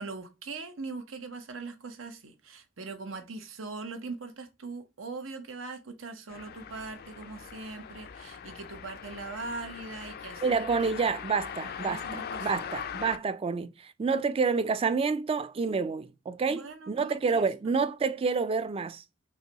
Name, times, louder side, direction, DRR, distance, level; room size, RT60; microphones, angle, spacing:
voice 1, 0.0-10.9 11.4-12.6 16.5-17.7, right 3 dB, 85° right, 0.9 m, -41 dB
sound 1, 6.3-13.2, left 7 dB, 50° left, 0.4 m, -41 dB
voice 2, 10.4-19.0, right 5 dB, 30° right, 0.3 m, -28 dB
5.5 x 2.2 x 2.8 m
head